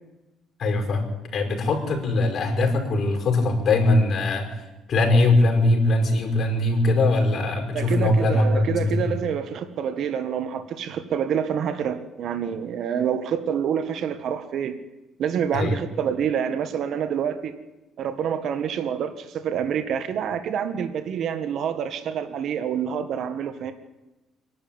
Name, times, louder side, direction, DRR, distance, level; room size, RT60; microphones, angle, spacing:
voice 1, 0.6-4.5 4.9-9.2 15.5-15.8, left 2 dB, 45° left, 4 dB, 5.3 m, -21 dB
voice 2, 7.7-14.7 15.2-17.5 18.0-23.7, right 8 dB, 55° right, 9 dB, 1.6 m, -27 dB
25.0 x 11.5 x 8.9 m, 1.0 s
cardioid pair, 135°, 0 cm